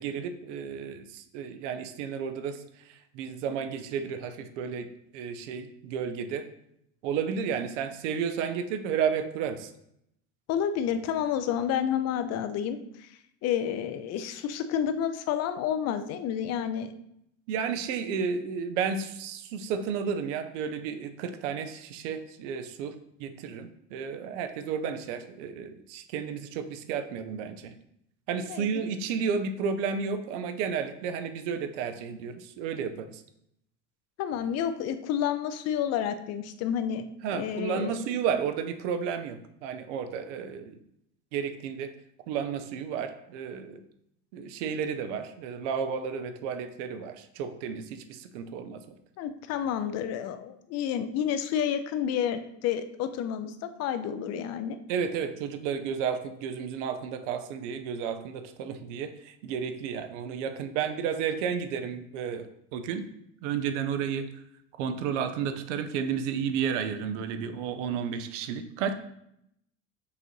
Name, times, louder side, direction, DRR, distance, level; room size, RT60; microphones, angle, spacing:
voice 1, 0.0-2.6 2.9-4.9 5.1-6.5 7.0-9.7 17.5-22.9 23.2-27.7 28.3-33.2 37.2-40.8 41.3-41.9 42.3-43.8 44.3-48.9 54.9-62.5 62.7-63.1 63.4-64.3 64.8-68.9, right 7 dB, 70° right, 9 dB, 0.6 m, -32 dB
voice 2, 10.5-13.1 13.4-16.9 28.5-28.8 34.2-37.1 37.3-38.0 49.2-54.8, left 9 dB, 45° left, 10 dB, 0.5 m, -30 dB
6.6 x 2.6 x 3.0 m, 0.76 s
hypercardioid pair, 80°, 37 cm